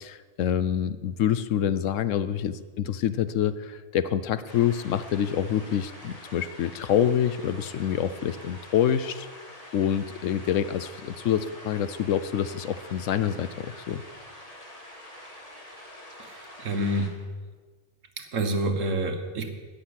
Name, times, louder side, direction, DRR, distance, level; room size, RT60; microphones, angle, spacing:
voice 1, 0.0-9.3 9.7-14.0, left 9 dB, 70° left, 14 dB, 0.9 m, -26 dB
sound 1, 4.5-17.1, left 1 dB, 25° left, 1.9 m, -46 dB
voice 2, 16.2-17.1 18.2-19.5, right 1 dB, 70° right, 6 dB, 1.6 m, -28 dB
13.0 x 6.6 x 9.6 m, 1.4 s
omnidirectional pair, 1.4 m